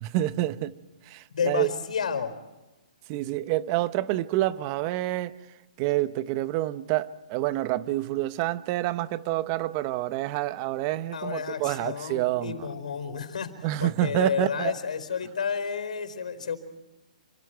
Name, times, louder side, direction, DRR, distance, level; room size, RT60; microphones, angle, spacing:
voice 1, 0.0-0.8 1.1-1.7 3.1-5.3 5.8-12.6 13.6-14.7, right 15 dB, 30° right, 1.0 m, -28 dB
voice 2, 1.3-2.3 11.1-13.5 13.8-16.6, left 6 dB, 80° left, 4.6 m, -31 dB
28.5 x 26.0 x 4.7 m
hypercardioid pair, 150°, 4 cm